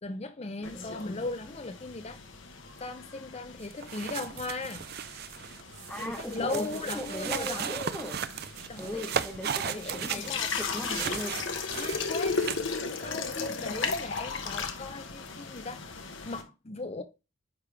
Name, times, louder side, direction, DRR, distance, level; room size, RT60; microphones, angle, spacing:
voice 1, 0.0-2.2 2.8-4.9 6.0-7.7 8.7-9.1 9.6-10.6 11.7-12.5 13.0-16.0 16.2-17.0, left 3 dB, 30° left, 0.6 m, -38 dB
sound 1, 0.6-16.4, left 4 dB, 60° left, 1.0 m, -37 dB
sound 2, 3.6-12.7, right 8 dB, 50° right, 0.4 m, -36 dB
voice 2, 5.9-6.7 6.9-8.2 8.8-11.3, left 1 dB, 5° left, 1.1 m, -38 dB
9.6 x 3.4 x 3.5 m
head